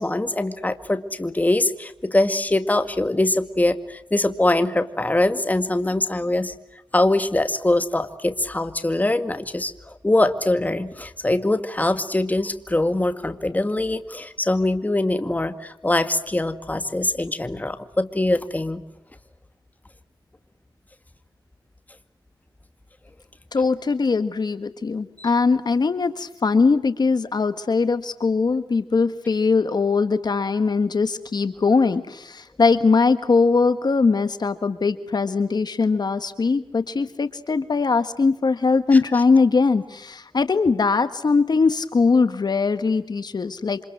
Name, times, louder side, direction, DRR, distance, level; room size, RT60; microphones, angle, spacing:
voice 1, 0.0-6.5 6.9-18.8 25.2-25.3, left 2 dB, 20° left, 8 dB, 2.2 m, -23 dB
voice 2, 23.5-43.8, left 4 dB, 55° left, 10 dB, 1.6 m, -21 dB
28.0 x 26.5 x 7.8 m, 0.85 s
wide cardioid pair, 80°, 8 cm